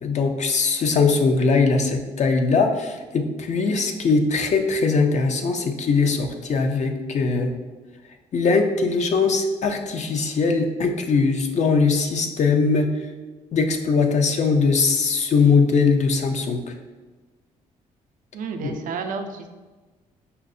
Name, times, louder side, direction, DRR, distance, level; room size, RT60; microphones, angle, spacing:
voice 1, 0.0-7.5 8.3-12.9 13.5-16.6 18.6-18.7, left 4 dB, 50° left, 5 dB, 0.5 m, -21 dB
voice 2, 18.3-19.5, right 5 dB, 65° right, 6 dB, 0.4 m, -31 dB
5.5 x 2.0 x 2.5 m, 1.2 s
supercardioid pair, 65°, 15 cm